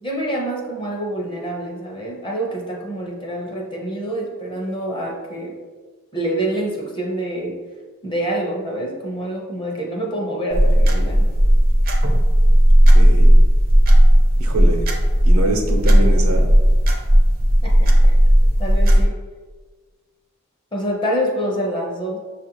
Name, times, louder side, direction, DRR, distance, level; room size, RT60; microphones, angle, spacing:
voice 1, 0.0-5.6 6.1-7.6 8.0-11.3 17.6-18.1 18.6-19.2 20.7-22.2, right 1 dB, 25° left, -1 dB, 0.7 m, -26 dB
sound 1, 10.5-19.1, equal, 45° right, 0.5 m, -14 dB
voice 2, 12.9-13.3 14.4-14.8 15.2-16.5, right 1 dB, 85° right, 3 dB, 0.7 m, -24 dB
6.6 x 2.5 x 2.9 m, 1.4 s
head